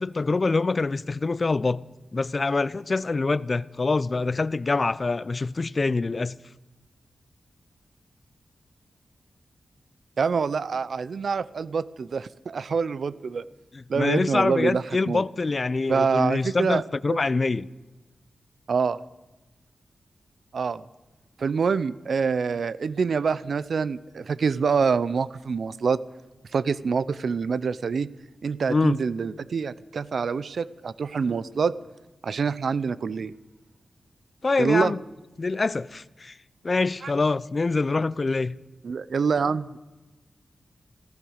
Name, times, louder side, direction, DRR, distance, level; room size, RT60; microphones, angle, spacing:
voice 1, 0.0-1.8 2.1-6.3 13.7-17.7 28.7-29.0 34.4-35.0 35.4-36.3 36.6-38.6, left 3 dB, 45° left, 0.5 m, -25 dB
voice 2, 10.2-13.5 13.9-15.2 15.9-16.8 17.1-17.2 18.7-19.0 20.5-20.8 21.4-26.0 26.5-28.1 28.4-31.7 32.2-33.3 34.6-34.9 37.0-37.1 38.8-39.8, right 5 dB, 75° right, 0.5 m, -26 dB
15.5 x 13.5 x 6.4 m
cardioid pair, 65°, 0 cm